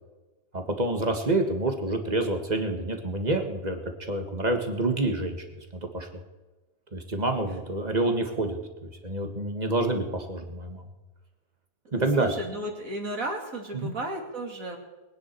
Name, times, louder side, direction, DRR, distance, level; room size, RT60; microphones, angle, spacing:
voice 1, 0.5-5.4 5.9-6.1 6.9-10.8 11.9-12.3 13.7-13.9, right 2 dB, 25° right, 4 dB, 1.8 m, -27 dB
voice 2, 11.8-14.8, right 2 dB, 55° right, 2 dB, 2.9 m, -34 dB
23.0 x 9.8 x 4.6 m, 1.2 s
omnidirectional pair, 1.8 m